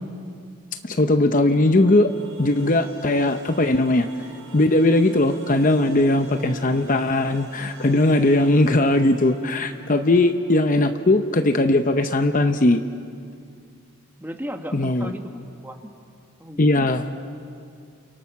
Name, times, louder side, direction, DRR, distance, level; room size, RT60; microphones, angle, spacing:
voice 1, 0.8-2.1 2.4-4.1 4.5-12.8 14.7-15.1 16.6-17.1, left 2 dB, 35° left, 8 dB, 0.7 m, -19 dB
sound 1, 1.4-12.4, right 3 dB, 70° right, 4.4 m, -46 dB
voice 2, 14.2-15.9 16.4-16.9, equal, 10° right, 4 dB, 1.4 m, -35 dB
28.5 x 28.0 x 5.9 m, 2.3 s
head